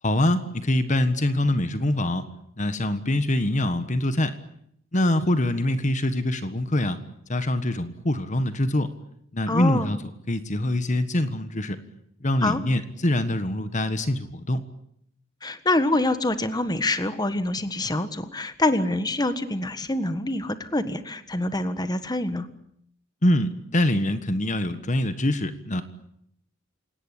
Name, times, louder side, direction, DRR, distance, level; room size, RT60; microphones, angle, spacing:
voice 1, 0.0-2.2 2.6-4.3 4.9-7.0 7.3-8.9 9.3-10.0 10.3-11.8 12.2-14.6 23.2-25.8, left 1 dB, 40° left, 11 dB, 1.5 m, -24 dB
voice 2, 9.5-9.9 12.4-12.6 15.4-22.5, left 2 dB, 20° left, 11 dB, 1.5 m, -25 dB
28.5 x 18.0 x 10.0 m, 0.75 s
head